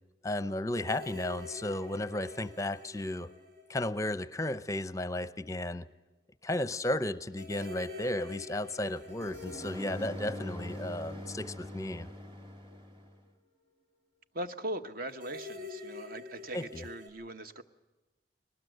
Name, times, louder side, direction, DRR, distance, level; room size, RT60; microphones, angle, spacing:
voice 1, 0.2-3.3 3.7-5.8 6.4-12.1 16.5-16.8, left 1 dB, 15° left, 15 dB, 0.6 m, -34 dB
sound 1, 0.7-4.5 4.8-4.9 7.3-12.7 15.1-17.1, left 3 dB, 75° right, 4.3 m, -46 dB
sound 2, 7.6-13.2, left 1 dB, 25° right, 1.8 m, -44 dB
voice 2, 14.3-17.6, right 1 dB, 50° right, 10 dB, 1.0 m, -40 dB
20.0 x 19.0 x 7.9 m, 1.1 s
head